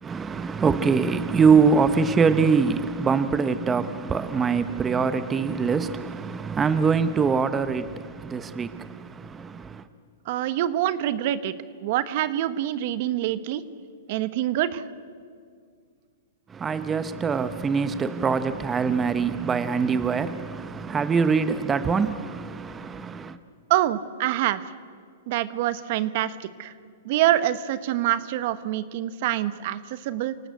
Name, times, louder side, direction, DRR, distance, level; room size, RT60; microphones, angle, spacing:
voice 1, 0.0-9.8 16.5-23.4, right 5 dB, 15° right, 0.8 m, -23 dB
voice 2, 10.2-11.5 11.8-13.6 14.1-14.8 23.7-24.7 25.3-26.7 27.0-30.5, right 13 dB, 50° right, 1.1 m, -25 dB
27.5 x 18.0 x 8.2 m
hypercardioid pair, 135°, 0 cm